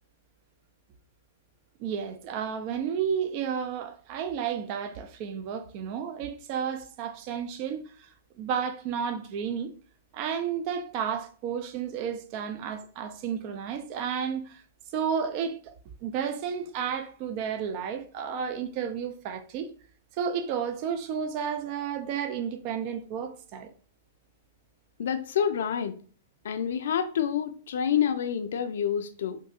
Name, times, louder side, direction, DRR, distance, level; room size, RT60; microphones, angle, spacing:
voice 1, 1.8-9.7 10.1-14.6 14.9-15.7 16.0-19.7 20.2-23.7, right 7 dB, 45° right, 0.4 m, -32 dB
voice 2, 25.0-26.0 26.4-29.4, left 8 dB, 65° left, 0.3 m, -28 dB
3.6 x 2.6 x 2.4 m
hypercardioid pair, 110°, 0 cm